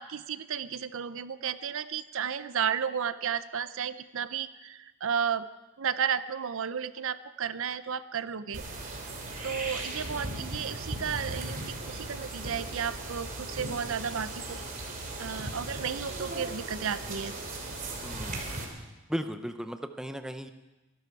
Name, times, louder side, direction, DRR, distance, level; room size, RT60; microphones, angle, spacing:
voice 1, 0.0-5.5 5.8-8.6 9.4-14.6 15.2-17.3, right 7 dB, 60° right, 14 dB, 0.6 m, -33 dB
sound 1, 8.5-18.6, right 2 dB, 40° right, 3.0 m, -37 dB
voice 2, 18.0-18.6 19.1-20.5, equal, 5° right, 7 dB, 0.6 m, -36 dB
25.5 x 12.0 x 4.7 m, 1.1 s
head